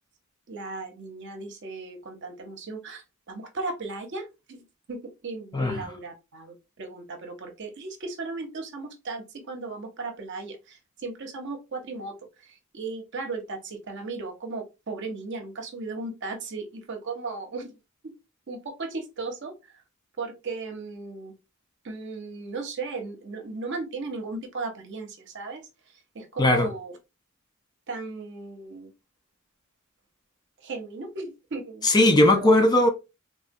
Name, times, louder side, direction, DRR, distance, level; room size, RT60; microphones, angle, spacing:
voice 1, 0.5-17.7 18.0-18.1 18.5-19.5 20.2-21.3 21.8-25.6 26.1-26.9 27.9-28.9 30.6-31.9 32.2-32.6, right 3 dB, 55° right, 0.7 m, -36 dB
voice 2, 5.5-5.9 26.4-26.7 31.8-32.9, left 1 dB, 20° left, 0.4 m, -19 dB
3.3 x 2.2 x 2.5 m
head